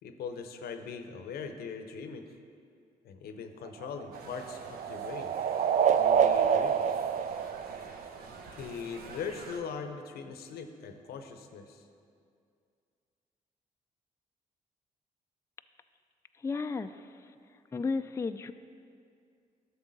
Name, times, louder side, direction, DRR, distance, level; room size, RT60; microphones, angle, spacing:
voice 1, 0.0-2.3 3.0-5.3 5.9-6.8 8.6-11.9, left 5 dB, 75° left, 7 dB, 0.7 m, -40 dB
sound 1, 3.7-8.4, right 7 dB, 50° right, 0.4 m, -27 dB
sound 2, 4.1-9.6, right 3 dB, 75° right, 0.9 m, -48 dB
voice 2, 16.4-17.3 17.7-18.5, left 4 dB, 20° left, 9 dB, 0.3 m, -34 dB
11.0 x 6.9 x 4.0 m, 2.3 s
supercardioid pair, 50°, 16 cm